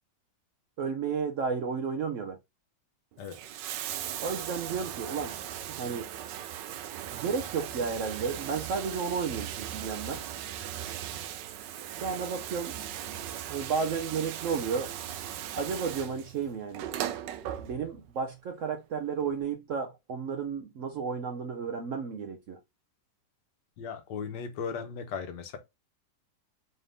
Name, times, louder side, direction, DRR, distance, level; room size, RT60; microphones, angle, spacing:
voice 1, 0.8-2.4 4.2-5.4 5.8-6.1 7.1-10.2 12.0-12.8 13.5-14.9 15.5-16.9 17.6-22.6, right 5 dB, 65° right, 0.8 m, -32 dB
Bathtub (filling or washing), 3.1-18.1 19.2-19.3, right 11 dB, 85° right, 1.2 m, -38 dB
voice 2, 23.8-25.6, left 6 dB, 80° left, 1.4 m, -37 dB
4.0 x 2.6 x 3.3 m
omnidirectional pair, 1.9 m